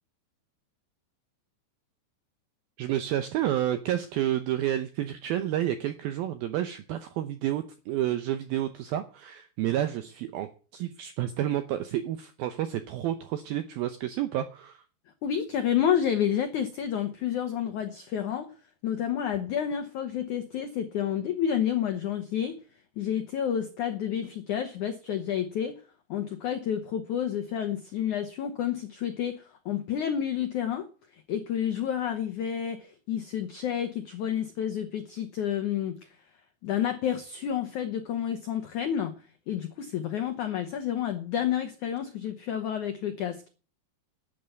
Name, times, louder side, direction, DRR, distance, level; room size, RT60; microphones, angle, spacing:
voice 1, 2.8-14.8, right 12 dB, 80° right, 2.1 m, -30 dB
voice 2, 15.2-18.5 18.8-22.6 23.0-25.8 26.1-36.1 36.6-39.1 39.5-43.4, left 9 dB, 80° left, 1.7 m, -30 dB
12.5 x 8.5 x 9.1 m
omnidirectional pair, 5.3 m